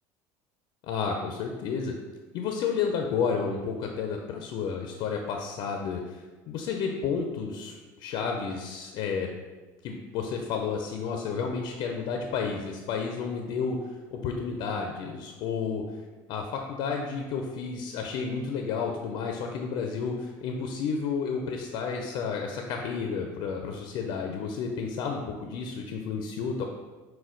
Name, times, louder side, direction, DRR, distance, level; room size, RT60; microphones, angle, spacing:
voice 1, 0.9-1.9 2.3-9.3 9.8-13.8 14.1-15.8 16.3-26.6, left 5 dB, 60° left, 3 dB, 0.5 m, -31 dB
6.2 x 2.2 x 3.8 m, 1.3 s
cardioid pair, 135°, 9 cm